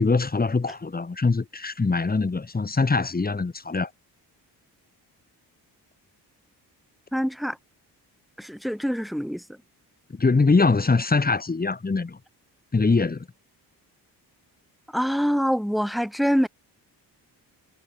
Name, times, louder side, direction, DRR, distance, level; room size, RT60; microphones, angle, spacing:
voice 1, 0.0-3.9 10.1-12.2 12.7-13.3, left 4 dB, 20° left, 2.5 m, -22 dB
voice 2, 7.1-7.6 8.4-9.4 14.9-16.5, equal, ahead, 2.8 m, -25 dB
cardioid pair, 110°, 40 cm